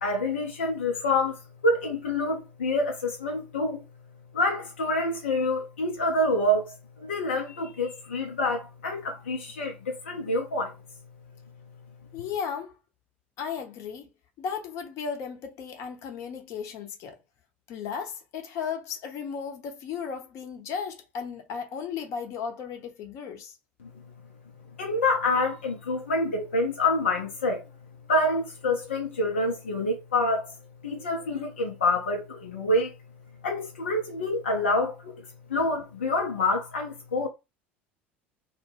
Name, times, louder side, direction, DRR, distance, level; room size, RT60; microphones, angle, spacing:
voice 1, 0.0-3.8 4.3-10.7 23.8-24.0 24.8-27.6 28.1-30.5 30.8-32.9 33.4-37.3, left 2 dB, 80° left, 0.6 m, -27 dB
voice 2, 12.1-12.8 13.4-14.1 14.4-17.2 17.7-23.6, left 6 dB, 50° left, 0.8 m, -35 dB
2.2 x 2.1 x 3.2 m
hypercardioid pair, 70°, 6 cm